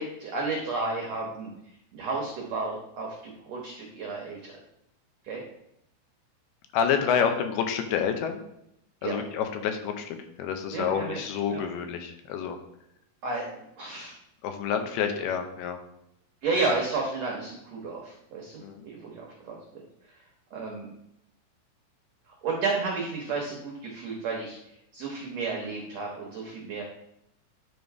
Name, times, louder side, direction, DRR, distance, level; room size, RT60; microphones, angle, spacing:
voice 1, 0.0-1.5 1.9-4.6 5.2-5.4 9.0-9.2 10.7-11.2 11.5-11.6 13.2-14.2 16.4-19.8 20.5-20.9 22.3-24.6 24.9-26.8, right 3 dB, 80° right, -1 dB, 1.5 m, -32 dB
voice 2, 6.7-8.4 9.0-12.6 14.4-15.8 18.6-18.8, left 7 dB, 80° left, 6 dB, 2.7 m, -28 dB
10.0 x 4.0 x 4.6 m, 0.80 s
omnidirectional pair, 4.6 m